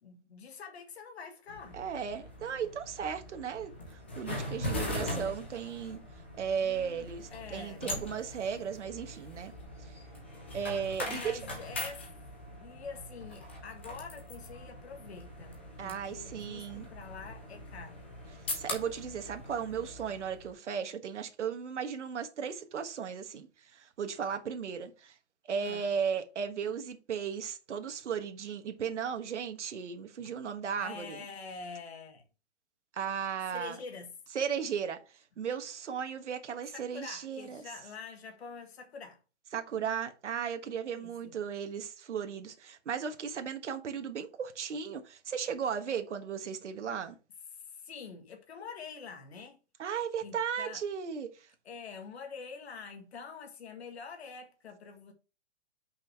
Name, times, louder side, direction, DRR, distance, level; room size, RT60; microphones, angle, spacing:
voice 1, 0.0-1.8 4.7-5.3 6.6-7.1 7.3-7.9 11.1-12.1 12.5-18.0 25.6-25.9 30.2-30.3 30.8-32.2 33.5-34.1 36.9-39.2 40.9-41.3 47.6-49.6 50.2-50.8 51.7-55.1, left 5 dB, 65° left, 1.8 m, -46 dB
sound 1, 1.5-20.5, left 1 dB, 10° left, 0.5 m, -41 dB
voice 2, 1.7-6.0 6.4-9.5 9.8-10.0 10.5-11.4 15.8-16.9 18.5-25.2 25.4-31.2 32.9-33.8 34.3-37.6 39.5-47.1 49.8-51.5, right 7 dB, 90° right, 1.4 m, -36 dB
5.7 x 5.6 x 4.5 m
hypercardioid pair, 175°, 35 cm